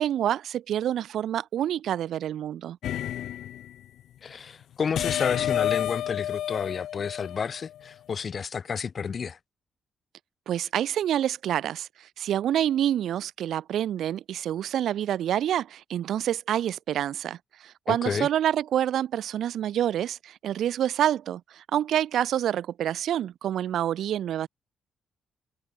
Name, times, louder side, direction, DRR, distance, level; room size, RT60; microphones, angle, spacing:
voice 1, 0.0-2.8 10.5-11.9 12.2-24.5, right 11 dB, 75° right, 1.3 m, -27 dB
sound 1, 2.8-3.7 4.9-7.8, left 11 dB, 85° left, 0.6 m, -30 dB
voice 2, 4.2-9.4 17.9-18.3, left 6 dB, 45° left, 1.3 m, -30 dB
cardioid pair, 120°, 0 cm